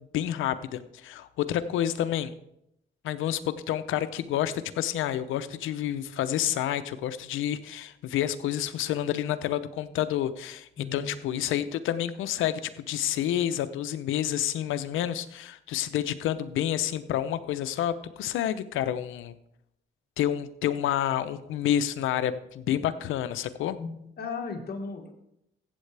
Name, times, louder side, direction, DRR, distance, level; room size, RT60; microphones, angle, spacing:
voice 1, 0.0-2.3 3.0-19.4 20.2-23.8, left 11 dB, 85° left, 12 dB, 0.7 m, -29 dB
voice 2, 10.8-11.1 23.8-25.1, left 4 dB, 55° left, 3 dB, 1.8 m, -36 dB
15.0 x 8.2 x 3.4 m, 0.80 s
cardioid pair, 90°, 20 cm